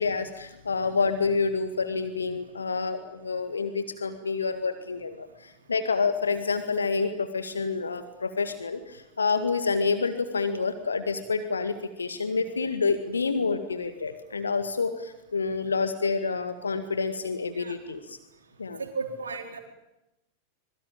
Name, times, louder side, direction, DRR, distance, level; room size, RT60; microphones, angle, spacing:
voice 1, 0.0-18.2 18.6-18.8, left 4 dB, 75° left, 10 dB, 1.9 m, -28 dB
voice 2, 18.8-19.6, right 4 dB, 70° right, 5 dB, 4.4 m, -34 dB
25.5 x 23.5 x 8.9 m, 0.91 s
figure-of-eight pair, 90°, 0 cm